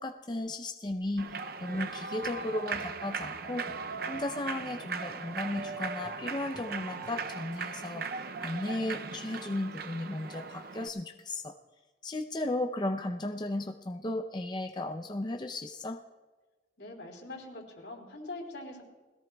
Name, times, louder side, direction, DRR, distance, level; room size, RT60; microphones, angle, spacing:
voice 1, 0.0-3.7 4.1-8.1 8.4-11.5 12.0-16.0, left 1 dB, 25° left, 4 dB, 0.5 m, -35 dB
Human voice / Clapping / Cheering, 1.2-10.9, right 5 dB, 55° right, 0.5 m, -38 dB
sound 1, 1.7-3.9 4.1-4.3 4.6-4.8 5.1-5.3 5.6-5.8 6.0-6.7 7.0-7.9, equal, 25° right, 3.4 m, -53 dB
voice 2, 16.8-18.8, left 2 dB, 90° left, 0 dB, 3.5 m, -43 dB
21.0 x 17.5 x 2.3 m, 1.3 s
head